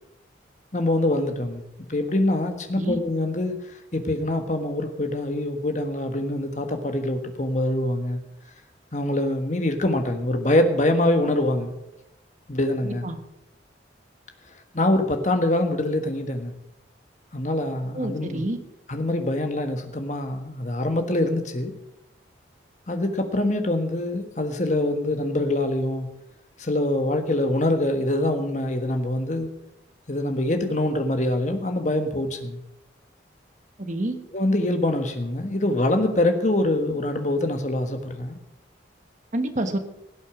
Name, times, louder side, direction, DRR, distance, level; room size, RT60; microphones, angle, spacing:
voice 1, 0.7-1.6 1.9-3.5 3.9-8.2 8.9-11.8 12.5-13.1 14.7-16.5 17.3-18.4 18.9-21.7 22.9-26.1 26.6-29.5 30.1-32.6 34.3-38.4, left 1 dB, 40° left, 6 dB, 1.5 m, -24 dB
voice 2, 12.8-13.2 17.9-18.6 33.8-34.2 39.3-39.8, right 1 dB, 40° right, 7 dB, 1.3 m, -28 dB
17.0 x 8.3 x 6.0 m, 0.86 s
head